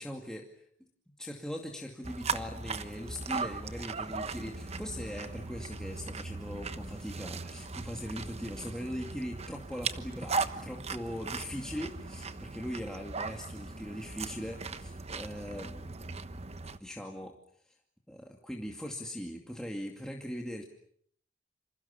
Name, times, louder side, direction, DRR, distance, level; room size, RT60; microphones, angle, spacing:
voice 1, 0.0-0.7 1.2-15.9 16.8-17.4 18.1-20.6, equal, 5° left, 0 dB, 2.4 m, -40 dB
sound 1, 2.0-16.8, right 4 dB, 35° right, 1.2 m, -38 dB
28.0 x 27.0 x 7.0 m, 0.64 s
head